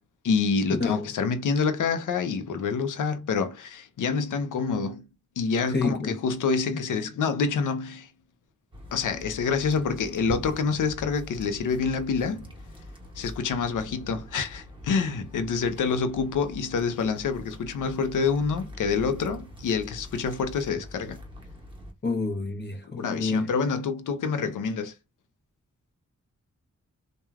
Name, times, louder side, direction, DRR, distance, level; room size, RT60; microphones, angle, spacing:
voice 1, 0.2-5.1 5.4-8.1 8.9-12.5 13.2-21.2 23.0-24.9, left 5 dB, 85° left, 0.5 m, -27 dB
voice 2, 5.7-6.1 22.0-23.5, left 4 dB, 35° left, 0.7 m, -28 dB
sound 1, 8.7-21.9, left 1 dB, 15° right, 1.0 m, -43 dB
3.1 x 2.1 x 2.3 m
wide cardioid pair, 75°, 30 cm